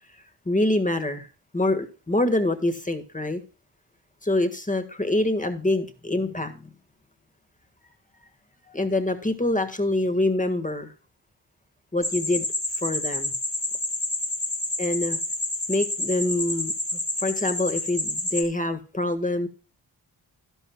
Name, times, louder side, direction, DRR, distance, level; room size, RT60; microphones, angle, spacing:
voice 1, 0.4-1.3 1.5-3.4 4.2-6.7 8.7-10.9 11.9-12.4 12.8-13.3 14.8-15.2 15.7-19.5, left 2 dB, 20° left, 9 dB, 1.6 m, -25 dB
sound 1, 12.0-18.4, left 1 dB, 50° left, 2.9 m, -29 dB
12.0 x 12.0 x 2.2 m, 0.34 s
wide cardioid pair, 65°, 42 cm